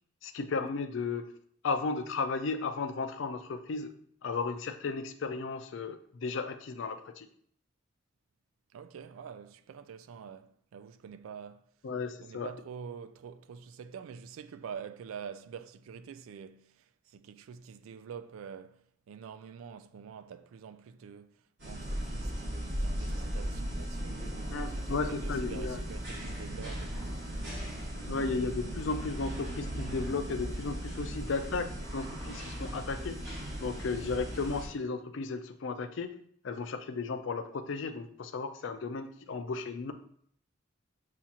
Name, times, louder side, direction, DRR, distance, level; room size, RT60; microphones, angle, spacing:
voice 1, 0.2-1.3 1.6-4.0 4.2-7.3 11.8-12.5 24.5-25.8 28.0-31.7 31.9-33.2 33.6-36.1 36.4-39.9, left 4 dB, 70° left, 0.4 m, -34 dB
voice 2, 8.7-11.6 12.2-16.8 17.1-21.3 21.6-27.1, right 7 dB, 90° right, 0.3 m, -46 dB
sound 1, 21.6-34.7, equal, 55° right, 1.6 m, -37 dB
7.2 x 2.4 x 2.8 m
head